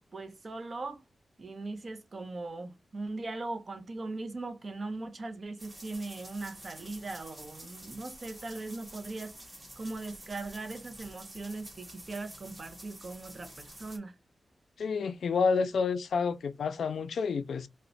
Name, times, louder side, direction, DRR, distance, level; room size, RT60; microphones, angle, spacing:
voice 1, 0.1-1.0 1.4-9.4 9.8-14.1, right 2 dB, 45° right, 0.5 m, -39 dB
sound 1, 5.6-14.0, right 1 dB, 25° right, 1.3 m, -49 dB
voice 2, 14.8-17.7, left 5 dB, 85° left, 0.3 m, -29 dB
2.9 x 2.0 x 2.5 m
wide cardioid pair, 95°, 0 cm